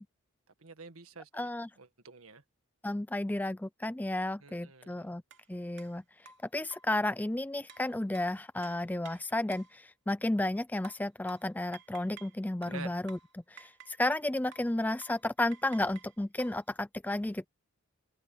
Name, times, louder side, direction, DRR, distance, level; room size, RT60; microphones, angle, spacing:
voice 1, 0.6-1.5 1.8-2.4 4.4-5.2 12.6-12.9, right 4 dB, 70° right, 1.8 m, -48 dB
voice 2, 1.3-1.7 2.8-5.2 5.5-6.0 6.5-13.2 13.5-17.5, left 1 dB, 5° left, 0.3 m, -32 dB
sound 1, 5.3-5.4 5.8-5.9 6.3-7.0 7.7-9.8 10.8-12.4 12.6-14.2 14.5-14.8 15.0-15.3 15.5-16.6, right 5 dB, 55° right, 2.9 m, -53 dB
head